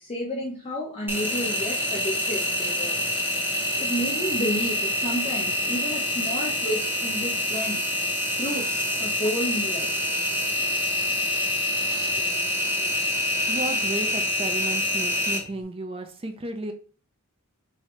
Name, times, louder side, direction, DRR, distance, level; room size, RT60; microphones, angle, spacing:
voice 1, 0.0-3.0 3.8-7.8 8.3-9.9 11.8-11.9, equal, 25° left, -4 dB, 0.7 m, -31 dB
Engine, 1.1-15.4, left 1 dB, 10° right, 0.8 m, -26 dB
voice 2, 12.1-12.9 13.5-16.7, right 2 dB, 25° right, 6 dB, 0.5 m, -34 dB
4.8 x 2.7 x 3.1 m, 0.39 s
head